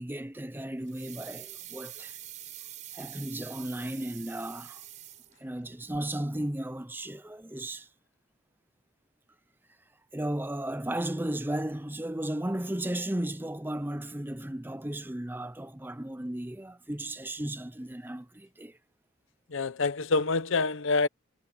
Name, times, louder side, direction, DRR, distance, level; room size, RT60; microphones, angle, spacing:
voice 1, 0.0-2.2 2.9-4.8 5.4-7.9 10.1-18.8, right 1 dB, 10° right, 0.6 m, -35 dB
sound 1, 0.9-5.7 5.9-6.0, right 12 dB, 35° right, 5.8 m, -45 dB
voice 2, 19.5-21.1, left 3 dB, 65° left, 0.8 m, -26 dB
head